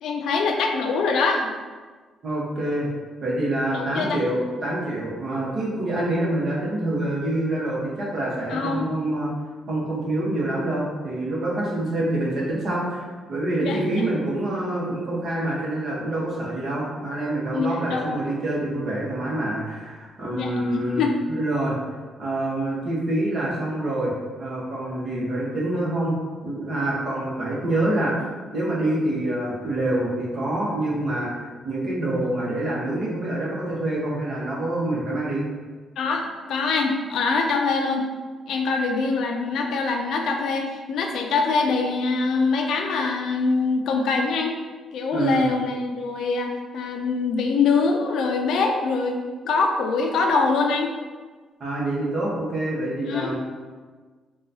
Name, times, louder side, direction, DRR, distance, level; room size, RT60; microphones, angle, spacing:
voice 1, 0.0-1.5 3.7-4.2 8.5-8.8 13.6-13.8 17.5-18.1 20.3-21.2 36.0-38.1 38.5-44.6 44.9-50.9 53.1-53.3, left 4 dB, 75° left, 2 dB, 0.4 m, -24 dB
voice 2, 2.2-2.9 3.2-9.3 9.7-21.0 21.3-21.8 22.2-24.1 24.4-26.1 26.4-28.1 28.5-35.4 45.1-45.5 51.6-53.4, right 1 dB, 55° right, -5 dB, 1.0 m, -26 dB
3.7 x 2.3 x 2.7 m, 1.4 s
cardioid pair, 90°, 0 cm